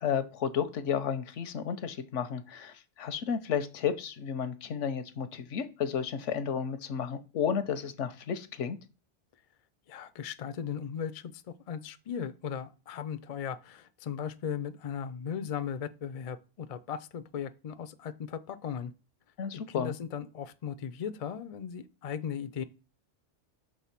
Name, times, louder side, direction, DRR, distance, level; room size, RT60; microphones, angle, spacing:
voice 1, 0.0-8.8 19.4-19.9, left 7 dB, 85° left, 1.1 m, -32 dB
voice 2, 9.9-18.9 19.5-22.6, left 8 dB, 55° left, 0.4 m, -37 dB
6.2 x 3.3 x 5.7 m
omnidirectional pair, 1.2 m